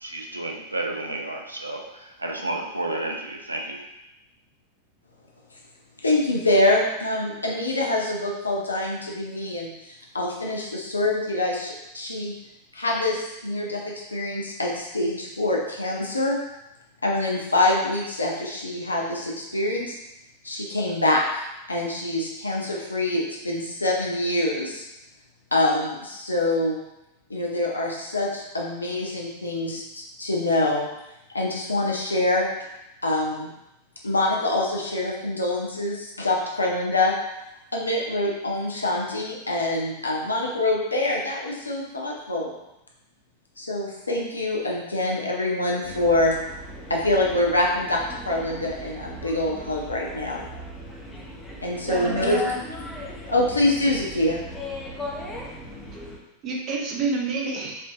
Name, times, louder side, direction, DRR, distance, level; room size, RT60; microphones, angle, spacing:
voice 1, 0.0-3.8, right 2 dB, 80° right, 2 dB, 0.4 m, -31 dB
voice 2, 6.0-12.3 12.7-16.4 17.0-20.0 20.4-24.8 25.5-26.8 27.3-30.9 31.3-32.5 33.0-33.5 34.0-37.1 37.7-42.5 43.6-46.3 46.9-50.5 51.6-52.5 53.3-54.4, left 2 dB, 80° left, -2 dB, 0.5 m, -25 dB
sound 1, 45.8-56.2, equal, 10° left, 0.7 m, -39 dB
voice 3, 51.9-52.6 56.4-57.9, right 3 dB, 35° right, -2 dB, 0.7 m, -28 dB
4.3 x 2.5 x 2.2 m, 0.91 s
figure-of-eight pair, 90°, 0 cm